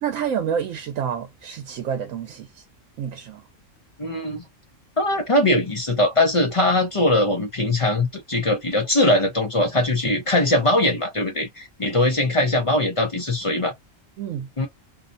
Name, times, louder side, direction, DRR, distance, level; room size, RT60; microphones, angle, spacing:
voice 1, 0.0-2.6 3.0-3.5 14.2-14.5, right 8 dB, 85° right, 1.0 m, -28 dB
voice 2, 4.0-4.4 5.0-13.7 14.6-14.7, left 1 dB, 40° left, 0.4 m, -21 dB
2.7 x 2.1 x 2.5 m
omnidirectional pair, 1.3 m